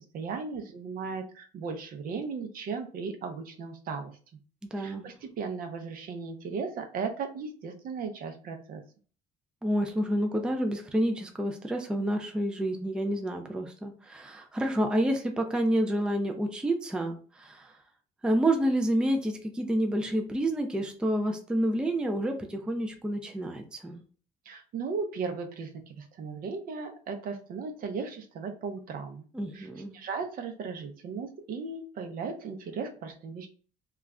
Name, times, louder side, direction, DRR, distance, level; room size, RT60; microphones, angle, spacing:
voice 1, 0.0-4.1 4.8-8.8 24.5-29.2 29.5-29.7 29.9-33.5, right 5 dB, 60° right, 6 dB, 0.6 m, -36 dB
voice 2, 4.7-5.1 9.6-17.8 18.2-24.0 29.3-30.0, right 1 dB, 5° right, 4 dB, 0.4 m, -29 dB
2.3 x 2.0 x 3.5 m, 0.40 s
cardioid pair, 110°, 17 cm